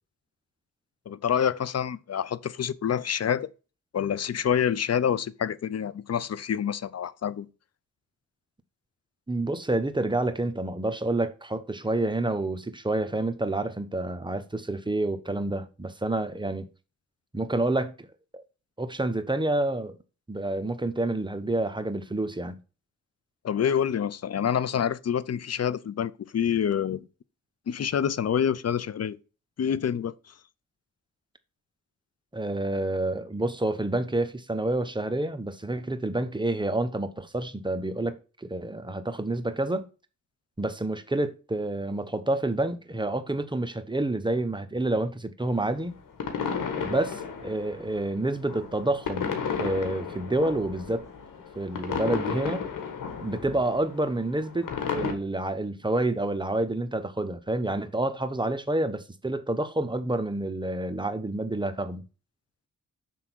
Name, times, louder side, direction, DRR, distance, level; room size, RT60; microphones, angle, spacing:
voice 1, 1.1-3.5 3.9-7.5 23.4-27.1 27.7-29.2 29.6-30.3, left 8 dB, 55° left, 0.6 m, -27 dB
voice 2, 9.3-16.7 17.3-18.1 18.3-18.4 18.8-19.9 20.3-22.6 32.3-39.9 40.6-46.0 46.8-51.0 51.6-52.7 53.2-62.1, right 2 dB, 15° right, 1.0 m, -28 dB
sound 1, 45.4-55.1, left 6 dB, 85° left, 1.3 m, -34 dB
6.9 x 3.7 x 6.1 m
cardioid pair, 65°, 31 cm